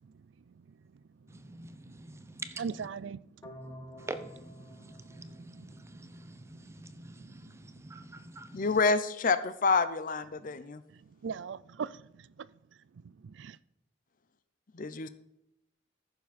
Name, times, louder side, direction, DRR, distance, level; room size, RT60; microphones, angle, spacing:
voice 1, 1.3-2.6 4.0-8.7, right 2 dB, 15° right, 0.6 m, -46 dB
voice 2, 2.6-4.0 5.1-5.7 6.5-6.6 7.1-7.6 7.9-8.3 10.9-12.5 13.2-13.6, right 6 dB, 65° right, 0.4 m, -42 dB
sound 1, 3.4-6.4, equal, 15° left, 1.3 m, -50 dB
voice 3, 8.5-10.8 14.7-15.1, left 4 dB, 45° left, 0.6 m, -28 dB
14.5 x 6.9 x 4.2 m
head